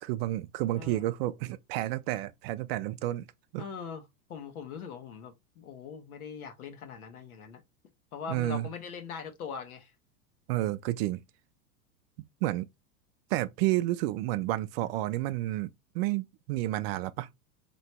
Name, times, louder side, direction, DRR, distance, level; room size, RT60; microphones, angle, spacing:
voice 1, 0.0-3.3 3.5-3.6 8.3-8.7 10.5-11.2 12.4-12.7 13.3-17.3, right 16 dB, 45° right, 0.4 m, -30 dB
voice 2, 3.6-4.0 4.3-7.6 8.1-9.9, left 6 dB, 75° left, 1.3 m, -41 dB
3.3 x 3.0 x 4.2 m
hypercardioid pair, 100°, 44 cm